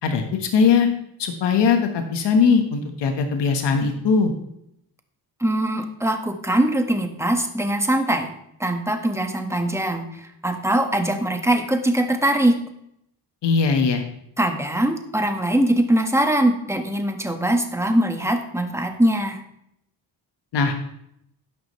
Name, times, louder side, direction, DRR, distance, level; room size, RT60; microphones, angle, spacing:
voice 1, 0.0-0.9 1.2-4.3 13.4-14.0 20.5-20.8, left 5 dB, 80° left, 5 dB, 1.5 m, -20 dB
voice 2, 5.4-8.3 8.6-12.6 14.4-19.4, right 1 dB, 5° right, 5 dB, 1.5 m, -22 dB
12.0 x 10.5 x 3.2 m, 0.74 s
cardioid pair, 105°, 41 cm